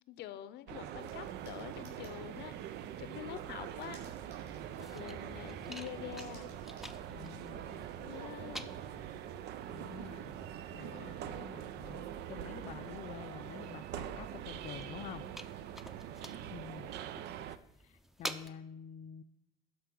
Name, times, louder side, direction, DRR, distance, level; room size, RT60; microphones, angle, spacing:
voice 1, 0.1-4.0 4.4-4.5 4.8-6.5 7.9-8.7 10.7-11.4, left 12 dB, 80° left, 14 dB, 0.7 m, -47 dB
sound 1, 0.7-17.6, right 10 dB, 80° right, 0.5 m, -44 dB
sound 2, 1.0-18.5, equal, ahead, 0.6 m, -52 dB
sound 3, 1.0-7.0, right 2 dB, 45° right, 4.6 m, -57 dB
voice 2, 7.1-7.9 9.7-10.4 10.7-15.3 16.1-16.9 17.5-19.2, left 9 dB, 45° left, 9 dB, 0.4 m, -49 dB
12.5 x 4.6 x 6.0 m, 0.84 s
cardioid pair, 110°, 17 cm